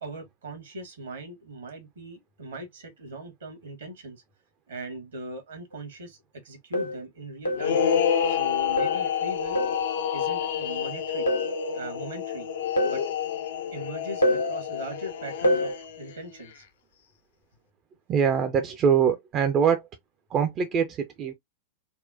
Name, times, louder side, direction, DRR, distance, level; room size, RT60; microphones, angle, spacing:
voice 1, 0.0-4.2 4.7-6.2 6.4-7.8 8.2-9.6 10.1-11.3 11.7-12.5 12.8-13.0 13.7-16.6, right 1 dB, 65° right, 1.4 m, -39 dB
sound 1, 5.7-5.8 6.7-7.0 7.5-7.8 8.8-9.1 9.6-9.9 11.3-11.6 12.8-13.1 14.2-14.5 15.4-15.8, equal, 80° left, 0.8 m, -25 dB
sound 2, 7.6-16.1, left 8 dB, 60° left, 0.5 m, -28 dB
voice 2, 18.1-19.8 20.3-21.3, right 7 dB, 30° right, 0.5 m, -23 dB
4.1 x 2.1 x 2.5 m
figure-of-eight pair, 90°, 0 cm